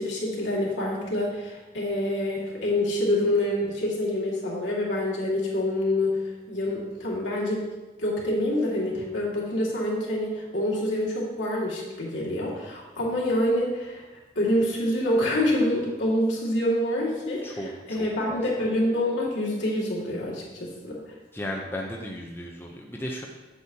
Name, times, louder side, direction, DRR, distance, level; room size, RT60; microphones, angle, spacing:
voice 1, 0.0-6.1 6.5-7.6 8.0-14.0 14.4-21.0, left 1 dB, 85° left, -4 dB, 2.2 m, -26 dB
voice 2, 17.4-18.4 21.3-23.3, left 1 dB, 10° left, -1 dB, 0.6 m, -35 dB
8.1 x 8.0 x 2.8 m, 1.2 s
head